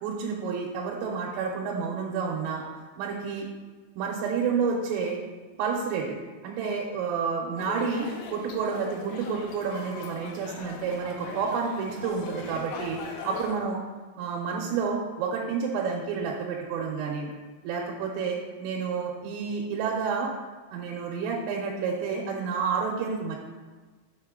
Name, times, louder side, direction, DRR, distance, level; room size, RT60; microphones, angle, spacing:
voice 1, 0.0-2.6 3.0-3.5 4.0-5.2 5.6-6.2 6.4-13.0 13.3-13.8 14.2-17.3 17.6-20.3 20.7-23.4, right 5 dB, 85° right, -2 dB, 3.5 m, -30 dB
sound 1, 7.6-13.6, left 4 dB, 85° left, 3.4 m, -40 dB
7.2 x 6.4 x 3.7 m, 1.4 s
omnidirectional pair, 5.7 m